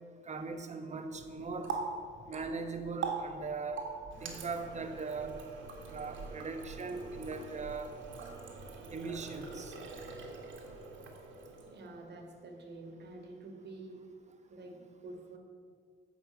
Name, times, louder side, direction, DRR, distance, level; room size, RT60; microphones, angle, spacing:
voice 1, 0.3-1.7 2.3-3.9 4.2-5.4 5.9-7.9 8.9-9.7, right 4 dB, 35° right, 6 dB, 1.1 m, -39 dB
Water tap faucet, 1.1-11.9, right 4 dB, 75° right, 1.7 m, -43 dB
voice 2, 11.7-14.0 14.5-15.4, right 2 dB, 60° right, 3 dB, 1.8 m, -48 dB
9.1 x 5.5 x 7.9 m, 2.1 s
cardioid pair, 90°, 20 cm